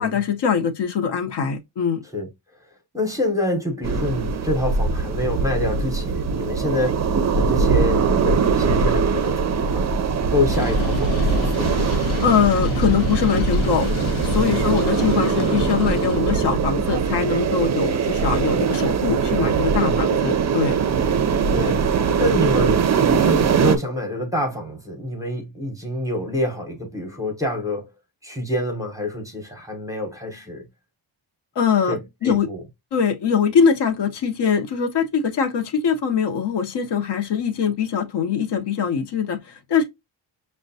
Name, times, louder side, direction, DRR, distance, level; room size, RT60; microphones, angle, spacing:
voice 1, 0.0-2.0 12.2-13.9 14.2-20.8 31.6-32.5 32.9-39.8, left 7 dB, 60° left, 0.8 m, -22 dB
voice 2, 2.9-9.9 10.3-11.8 14.4-14.8 19.9-20.1 21.5-27.9 28.2-30.7 31.9-32.6, left 1 dB, 5° right, 0.8 m, -27 dB
sound 1, 3.8-23.8, right 5 dB, 40° right, 0.4 m, -21 dB
sound 2, 10.5-16.2, left 6 dB, 90° left, 0.8 m, -30 dB
6.1 x 2.2 x 2.6 m
wide cardioid pair, 175°, 47 cm